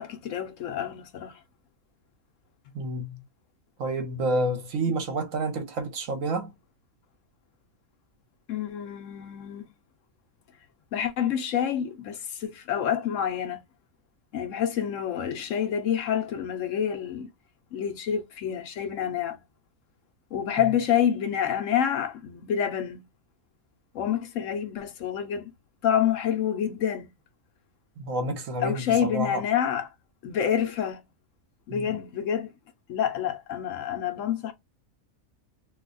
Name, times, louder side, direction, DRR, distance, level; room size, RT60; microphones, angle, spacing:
voice 1, 0.0-1.3 8.5-9.7 10.9-13.6 14.3-17.3 17.7-19.4 20.3-23.0 23.9-25.5 25.8-27.1 28.6-29.9 30.2-31.0 31.7-32.5 32.9-34.5, left 9 dB, 70° left, 1.0 m, -28 dB
voice 2, 2.7-3.2 3.8-6.5 20.6-20.7 28.0-29.4 31.7-31.9, right 2 dB, 70° right, 1.2 m, -29 dB
2.8 x 2.2 x 3.8 m
omnidirectional pair, 1.5 m